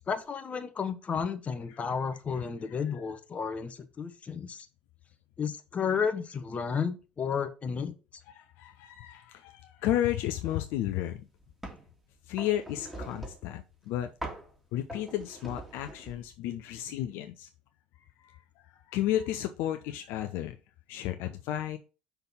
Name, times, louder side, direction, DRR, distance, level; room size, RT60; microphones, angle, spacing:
voice 1, 0.1-4.7 5.4-7.9, left 6 dB, 30° left, 9 dB, 0.9 m, -32 dB
voice 2, 8.3-11.2 12.3-14.1 14.7-17.5 18.9-20.6 20.9-21.8, left 12 dB, 60° left, 6 dB, 0.5 m, -32 dB
sound 1, 10.4-10.7 11.1-11.9 12.4-13.6 14.2-14.5 14.9-16.3, right 1 dB, 5° right, 2.1 m, -42 dB
5.8 x 3.5 x 5.6 m, 0.33 s
figure-of-eight pair, 60°, 4 cm